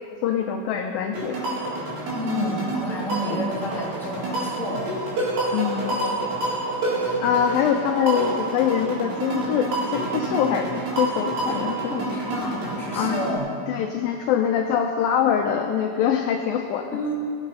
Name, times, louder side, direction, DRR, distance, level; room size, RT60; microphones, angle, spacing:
voice 1, 0.2-1.4 5.5-6.0 7.2-12.0 13.0-13.2 13.7-16.9, left 8 dB, 80° left, 4 dB, 2.1 m, -24 dB
sound 1, 1.1-13.4, right 2 dB, 70° right, 5.6 m, -28 dB
Bowed string instrument, 1.5-7.2, left 1 dB, 35° right, 1.9 m, -47 dB
voice 2, 2.1-4.9 7.0-7.1 11.6-13.5 16.9-17.1, equal, ahead, -6 dB, 2.3 m, -30 dB
22.0 x 9.1 x 5.6 m, 2.5 s
omnidirectional pair, 4.9 m